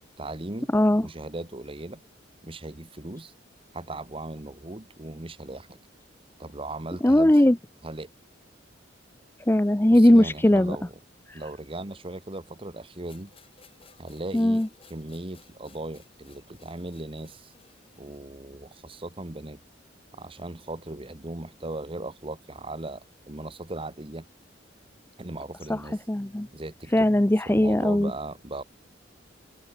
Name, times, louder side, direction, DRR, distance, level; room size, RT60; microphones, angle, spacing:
voice 1, 0.2-0.7 1.0-2.0 2.4-3.3 3.7-5.8 6.4-7.3 7.8-8.1 9.9-10.9 11.3-13.3 14.0-14.6 14.9-17.5 18.0-19.6 20.1-24.3 25.2-26.0 26.5-27.1 27.5-28.6, right 2 dB, 30° right, 1.3 m, -38 dB
voice 2, 0.7-1.1 7.0-7.6 9.5-10.8 11.3-11.4 14.3-14.7 25.7-25.8 26.1-26.5 26.9-28.1, left 1 dB, 10° left, 0.5 m, -19 dB
sound 1, 13.1-18.4, left 5 dB, 30° left, 5.8 m, -58 dB
open air
head